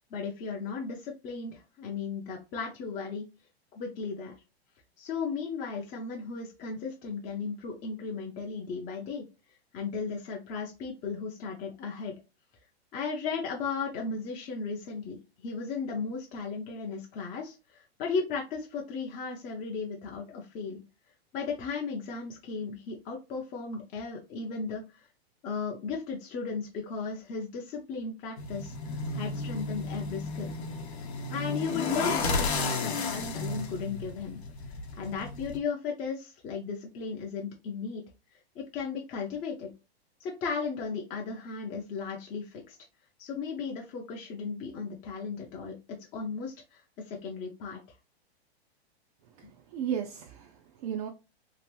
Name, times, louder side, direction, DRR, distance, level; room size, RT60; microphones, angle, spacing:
voice 1, 0.1-3.3 3.7-4.3 5.0-9.2 9.7-12.1 12.9-20.8 21.3-25.1 25.4-28.7 29.1-30.5 31.3-34.4 34.6-38.0 38.6-39.7 40.2-42.8 43.2-47.8, left 5 dB, 25° left, 0.5 m, -35 dB
sound 1, 28.4-35.6, left 3 dB, 85° left, 0.8 m, -33 dB
voice 2, 49.4-51.1, right 8 dB, 40° right, 0.4 m, -35 dB
2.9 x 2.5 x 3.0 m
hypercardioid pair, 125°, 32 cm